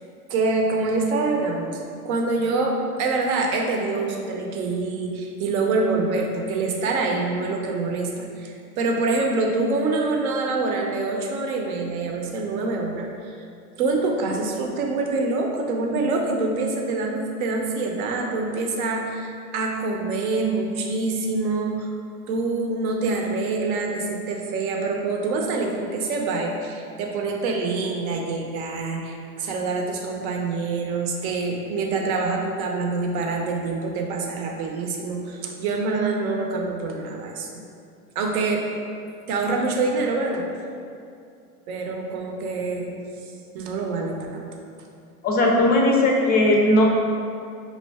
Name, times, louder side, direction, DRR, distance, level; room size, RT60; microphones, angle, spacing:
voice 1, 0.3-13.4 13.8-21.9 22.3-37.6 38.2-38.7 39.3-40.5 41.7-43.0 43.5-44.5, right 3 dB, 70° right, 1 dB, 0.7 m, -25 dB
voice 2, 45.2-46.8, left 1 dB, 20° left, -1 dB, 0.4 m, -18 dB
5.3 x 2.5 x 2.3 m, 2.4 s
hypercardioid pair, 100°, 45 cm